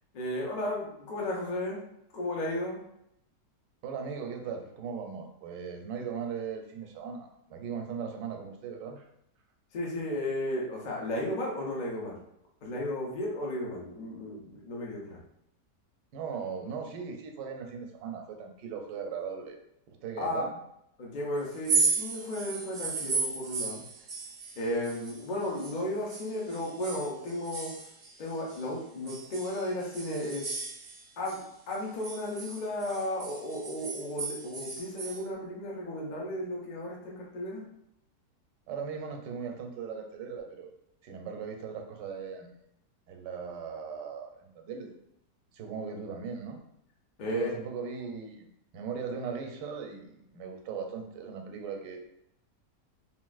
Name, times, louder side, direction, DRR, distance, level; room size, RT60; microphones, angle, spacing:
voice 1, 0.1-1.8 2.1-2.8 9.7-12.2 12.6-15.2 20.2-20.5 21.0-23.8 24.6-27.7 28.2-30.5 31.2-31.4 31.7-37.7 47.2-47.5, left 1 dB, 75° left, -3 dB, 0.4 m, -34 dB
voice 2, 3.8-9.1 16.1-19.6 19.9-20.5 38.7-40.7 41.0-42.6 43.1-44.9 45.5-46.6 47.3-48.5 48.7-52.0, right 6 dB, 85° right, 3 dB, 1.2 m, -38 dB
sound 1, 21.5-25.8 26.1-28.6 29.1-31.4 31.7-35.2, right 4 dB, 60° right, 0.7 m, -34 dB
3.7 x 2.4 x 2.3 m, 0.77 s
omnidirectional pair, 1.8 m